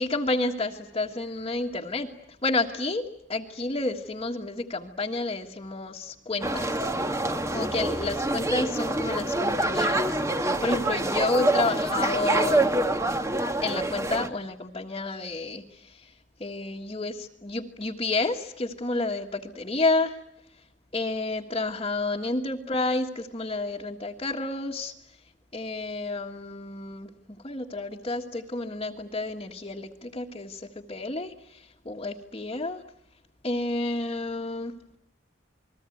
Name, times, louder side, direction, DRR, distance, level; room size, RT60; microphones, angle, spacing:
voice 1, 0.0-2.1 2.4-6.9 7.5-12.7 13.6-16.1 16.4-20.2 20.9-24.9 25.5-27.1 27.4-32.8 33.4-34.7, left 2 dB, 30° left, -2 dB, 1.6 m, -30 dB
sound 1, 6.4-14.3, right 1 dB, 15° right, 1.4 m, -26 dB
28.5 x 21.0 x 9.2 m, 0.73 s
head